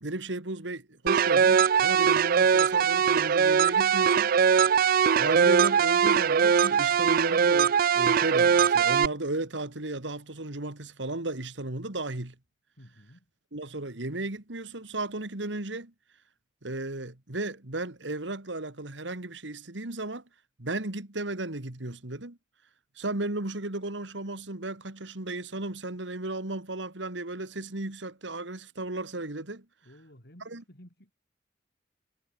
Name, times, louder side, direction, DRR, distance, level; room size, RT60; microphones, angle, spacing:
voice 1, 0.0-4.3 5.2-12.3 13.5-15.9 16.6-20.2 20.6-22.4 23.0-29.7 30.5-30.6, right 2 dB, 75° right, 2.4 m, -35 dB
sound 1, 1.1-9.1, right 7 dB, 50° right, 0.4 m, -21 dB
voice 2, 12.8-13.3 29.8-31.1, equal, 60° left, 7.1 m, -53 dB
head